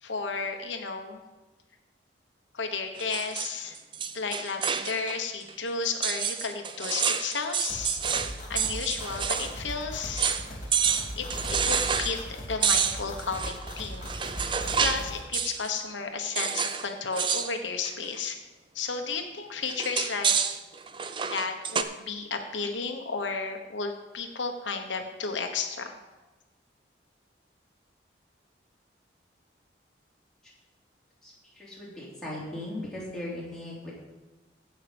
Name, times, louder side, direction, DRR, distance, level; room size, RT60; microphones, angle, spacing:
voice 1, 0.0-1.2 2.5-3.8 4.1-8.0 8.5-10.3 11.2-14.5 14.8-18.4 18.7-20.3 21.3-26.0, left 4 dB, 90° left, 4 dB, 1.1 m, -33 dB
sound 1, 3.0-5.2 5.5-5.6 6.0-9.5 9.8-9.9 10.2-10.5 10.7-12.2 12.6-15.1 15.3-15.7 16.3-16.9 17.1-17.5 17.8-18.2 19.7-21.8, right 7 dB, 25° right, 0.5 m, -28 dB
sound 2, 7.7-15.2, equal, 40° left, 2.2 m, -39 dB
voice 2, 31.2-33.9, left 1 dB, 5° left, -7 dB, 3.2 m, -38 dB
15.5 x 5.7 x 5.2 m, 1.2 s
head